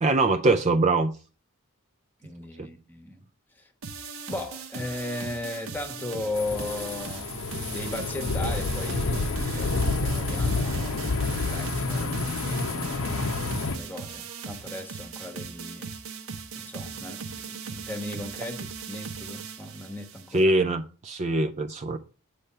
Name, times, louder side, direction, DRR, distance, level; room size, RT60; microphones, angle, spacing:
voice 1, 0.0-1.1 20.3-22.0, right 2 dB, 30° right, 0.4 m, -23 dB
voice 2, 2.2-3.2 3.6-3.7 4.3-9.7 10.0-15.9 16.5-20.5, left 2 dB, 10° left, 1.0 m, -37 dB
sound 1, 3.8-20.4, right 5 dB, 65° right, 0.8 m, -39 dB
sound 2, 6.3-13.8, left 3 dB, 65° left, 0.8 m, -28 dB
8.5 x 3.3 x 5.5 m
head